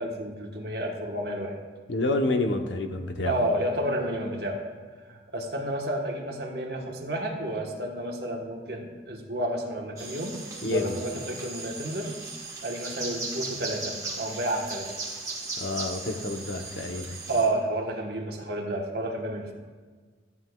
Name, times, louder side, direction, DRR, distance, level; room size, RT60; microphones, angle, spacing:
voice 1, 0.0-1.5 3.2-4.6 5.1-12.1 12.6-14.9 17.3-19.5, right 1 dB, 60° right, 1 dB, 1.3 m, -31 dB
voice 2, 1.9-3.3 10.6-11.0 15.6-17.2, left 2 dB, 90° left, 5 dB, 0.9 m, -28 dB
sound 1, 10.0-17.5, right 3 dB, 20° right, 1.5 m, -37 dB
14.0 x 9.5 x 2.3 m, 1.5 s
head